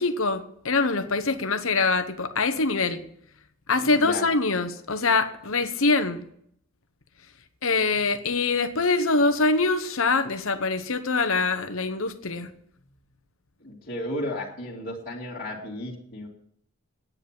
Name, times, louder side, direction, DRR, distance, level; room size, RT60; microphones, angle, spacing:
voice 1, 0.0-3.0 3.7-6.2 7.6-12.5, left 3 dB, 65° left, 10 dB, 1.0 m, -24 dB
voice 2, 3.8-4.3 13.6-16.3, left 1 dB, 45° left, -7 dB, 2.4 m, -34 dB
10.0 x 9.4 x 7.4 m, 0.70 s
head